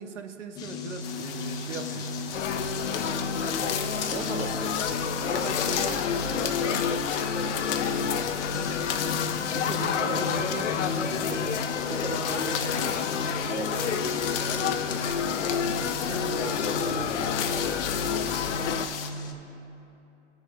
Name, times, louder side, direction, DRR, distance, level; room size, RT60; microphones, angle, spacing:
voice 1, 0.0-2.1 3.3-3.7 4.1-7.4 7.9-8.4 9.5-15.1 15.6-17.3 17.9-18.6, right 5 dB, 75° right, 6 dB, 1.0 m, -39 dB
sound 1, 0.6-19.3, left 1 dB, 10° left, 0.3 m, -37 dB
sound 2, 1.0-19.1, left 8 dB, 50° left, 0.8 m, -35 dB
sound 3, 2.3-18.9, left 7 dB, 80° left, 0.6 m, -29 dB
17.5 x 6.2 x 2.6 m, 2.9 s
hypercardioid pair, 115°, 36 cm